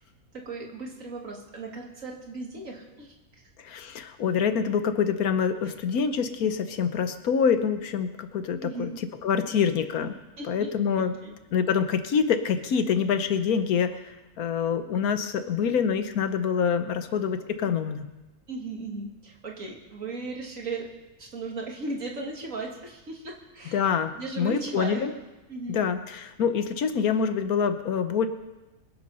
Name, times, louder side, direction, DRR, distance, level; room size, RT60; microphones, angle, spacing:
voice 1, 0.3-3.4 8.6-8.9 9.4-9.5 10.4-10.7 11.0-11.3 18.5-20.9 21.2-23.8 24.1-25.0 25.5-25.8, right 3 dB, 60° right, 0 dB, 2.5 m, -36 dB
voice 2, 3.6-8.9 9.2-10.1 10.4-11.1 11.5-18.1 23.7-25.1 25.7-28.3, left 7 dB, 75° left, 10 dB, 1.4 m, -26 dB
23.0 x 8.0 x 5.5 m, 1.1 s
omnidirectional pair, 1.6 m